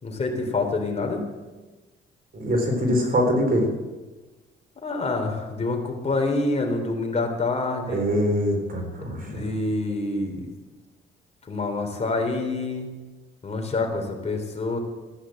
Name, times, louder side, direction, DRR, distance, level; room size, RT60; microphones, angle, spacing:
voice 1, 0.0-1.2 4.8-8.1 9.1-10.5 11.4-12.9 13.4-14.8, left 3 dB, 35° left, 3 dB, 3.7 m, -27 dB
voice 2, 2.3-3.7 7.9-9.4, equal, 45° right, 3 dB, 4.3 m, -23 dB
15.0 x 10.0 x 7.8 m, 1.2 s
cardioid pair, 90°, 20 cm